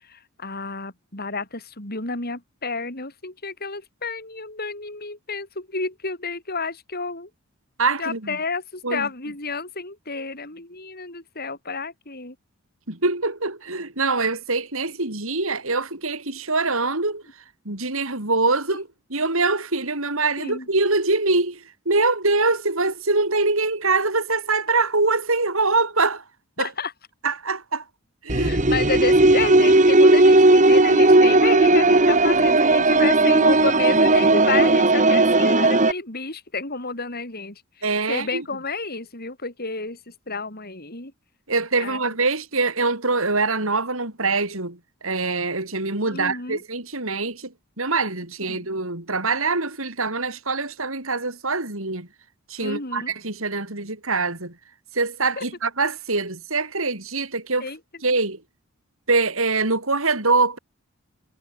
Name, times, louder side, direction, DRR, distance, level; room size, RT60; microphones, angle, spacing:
voice 1, 0.0-7.3 8.0-12.3 18.7-18.8 20.4-20.7 26.6-26.9 28.3-41.1 41.8-42.0 46.1-46.6 48.5-48.7 52.6-53.1 55.4-55.5 57.6-57.8, left 3 dB, 45° left, 6.5 m, -30 dB
voice 2, 7.8-8.4 8.8-9.1 12.9-17.2 17.6-26.2 26.6-26.7 27.2-27.8 28.2-28.5 37.8-38.4 41.5-44.8 45.0-52.1 52.5-54.5 54.9-57.7 58.0-58.4 59.1-60.6, right 3 dB, 65° right, 5.0 m, -24 dB
sound 1, 28.3-35.9, right 2 dB, 35° right, 2.3 m, -16 dB
head